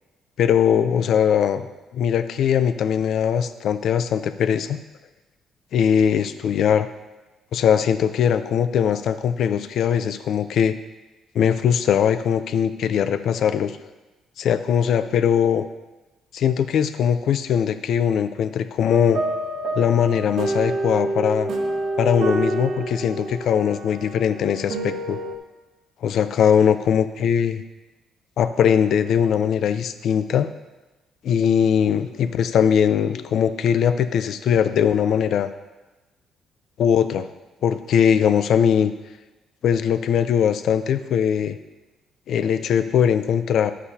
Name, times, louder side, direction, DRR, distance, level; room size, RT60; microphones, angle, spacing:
voice 1, 0.4-1.7 1.9-4.8 5.7-6.9 7.5-10.7 11.3-13.7 14.4-15.6 16.3-19.2 19.8-21.5 22.0-25.2 26.0-27.6 28.4-30.5 31.2-35.5 36.8-37.3 37.6-38.9 39.6-41.6 42.3-43.7, left 8 dB, 65° left, 11 dB, 0.5 m, -20 dB
sound 1, 18.9-25.3, right 2 dB, 65° right, 1.2 m, -27 dB
11.5 x 8.3 x 2.8 m, 1.1 s
cardioid pair, 115°, 0 cm